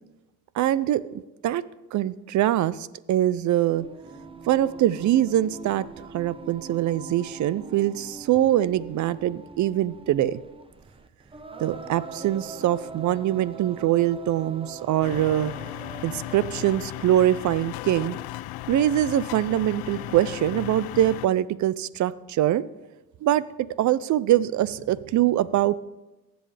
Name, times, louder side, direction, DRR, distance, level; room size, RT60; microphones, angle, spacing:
voice 1, 0.6-1.0 1.4-1.6 1.9-2.7 3.1-3.9 4.5-5.9 6.1-10.4 11.6-15.5 16.0-18.2 18.7-22.6 23.2-23.4 23.8-25.7, right 12 dB, 50° right, 18 dB, 0.5 m, -23 dB
Singing, 3.8-17.0, right 4 dB, 15° right, 0.7 m, -42 dB
sound 1, 15.0-21.3, left 16 dB, 70° left, 0.5 m, -36 dB
18.0 x 7.9 x 3.4 m, 1.0 s
cardioid pair, 105°, 39 cm